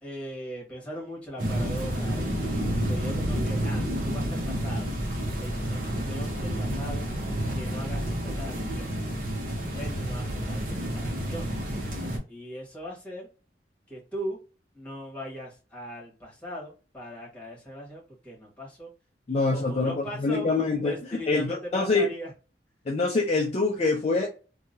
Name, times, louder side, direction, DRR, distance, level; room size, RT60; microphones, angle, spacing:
voice 1, 0.0-4.9 5.3-7.1 7.5-9.0 9.7-11.5 12.3-13.3 13.9-14.4 14.7-18.9 19.3-20.5 20.8-22.3, equal, 10° left, 1.4 m, -39 dB
sound 1, 1.4-12.2, equal, 50° right, 1.0 m, -30 dB
voice 2, 19.3-20.9 21.3-22.1 22.9-24.3, left 3 dB, 35° left, 0.4 m, -25 dB
2.9 x 2.3 x 2.6 m
head